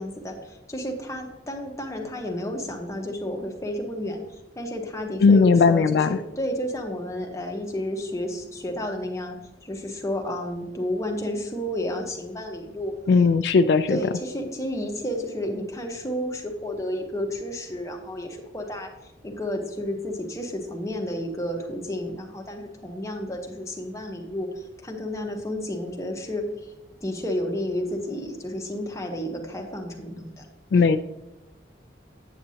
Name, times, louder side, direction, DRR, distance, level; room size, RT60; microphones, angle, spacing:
voice 1, 0.0-4.2 4.5-12.9 13.9-18.9 19.2-26.7 27.0-30.5, left 1 dB, 15° left, 2 dB, 1.0 m, -31 dB
voice 2, 5.2-6.2 13.1-14.0 30.7-31.0, left 4 dB, 70° left, 9 dB, 0.3 m, -17 dB
8.5 x 7.8 x 2.8 m, 1.0 s
head